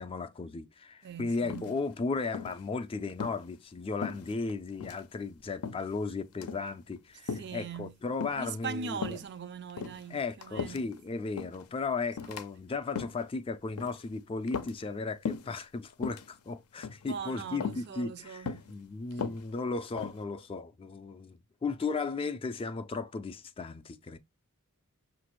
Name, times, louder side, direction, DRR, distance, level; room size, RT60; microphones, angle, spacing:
voice 1, 0.0-9.2 10.1-24.2, left 4 dB, 25° left, 0.3 m, -35 dB
voice 2, 1.0-1.8 7.2-7.9 8.4-10.9 12.2-12.3 17.1-18.6 19.1-19.3, right 6 dB, 50° right, 0.4 m, -41 dB
sound 1, 1.5-2.0 2.3-2.6 3.1-3.4 4.0-4.5 4.8-5.0 5.6-6.0 6.3-6.7 7.3-7.6 8.2-8.6 9.0-9.3 9.7-11.0 11.4-11.7 12.2-12.4 12.8-13.2 13.8-14.1 14.5-15.0 15.2-15.6 15.9-16.3 16.8-17.1 17.6-17.9 18.5-18.7 19.1-20.2, left 6 dB, 80° left, 0.5 m, -37 dB
5.9 x 2.5 x 3.0 m
head